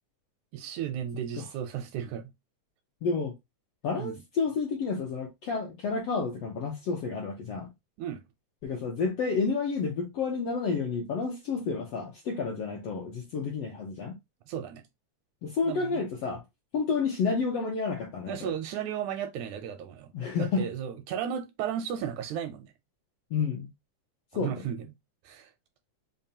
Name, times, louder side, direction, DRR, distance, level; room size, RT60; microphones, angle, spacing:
voice 1, 0.5-2.3 4.0-4.1 8.0-8.2 14.5-14.8 15.6-16.0 18.3-20.1 20.4-22.7 24.4-24.9 25.2-25.5, right 9 dB, 80° right, 1.8 m, -34 dB
voice 2, 3.0-3.3 3.8-7.7 8.6-14.2 15.4-16.4 16.7-18.5 20.1-20.7 23.3-23.7 24.3-24.5, left 5 dB, 80° left, 1.4 m, -30 dB
5.3 x 2.2 x 2.7 m
omnidirectional pair, 3.7 m